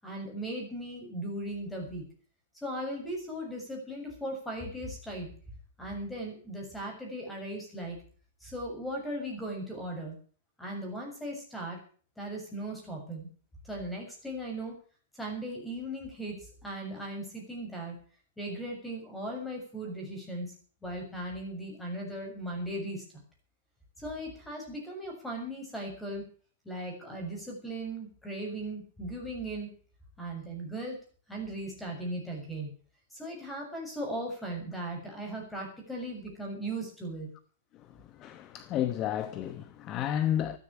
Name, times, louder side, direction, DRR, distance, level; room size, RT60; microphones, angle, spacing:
voice 1, 0.0-2.0 2.6-5.3 5.8-8.0 8.4-10.2 10.6-11.8 12.2-13.3 13.6-14.8 15.2-17.9 18.4-20.5 20.8-23.2 24.0-26.2 26.7-29.7 30.2-31.0 31.3-32.7 33.1-37.3, right 1 dB, 5° left, 7.0 m, -37 dB
voice 2, 37.7-40.6, left 11 dB, 25° left, 0.9 m, -32 dB
14.0 x 12.5 x 7.2 m
supercardioid pair, 160°, 0 cm